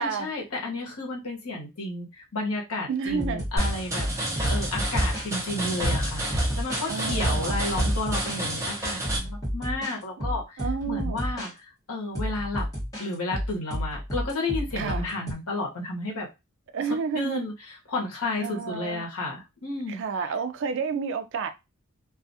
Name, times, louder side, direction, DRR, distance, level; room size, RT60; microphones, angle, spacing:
voice 1, 0.0-4.1 4.5-12.7 13.0-16.3 17.1-20.0, left 2 dB, 80° left, 1.0 m, -32 dB
voice 2, 2.9-3.4 6.9-7.6 10.2-11.2 14.8-15.0 16.7-17.4 18.4-19.1 19.9-21.5, right 5 dB, 55° right, 0.3 m, -30 dB
sound 1, 3.1-5.3 5.9-8.4 9.0-9.9 10.2-11.5 12.1-15.3, equal, 15° left, 1.1 m, -31 dB
sound 2, 3.6-9.2, right 1 dB, 15° right, 0.6 m, -28 dB
2.4 x 2.3 x 2.6 m
head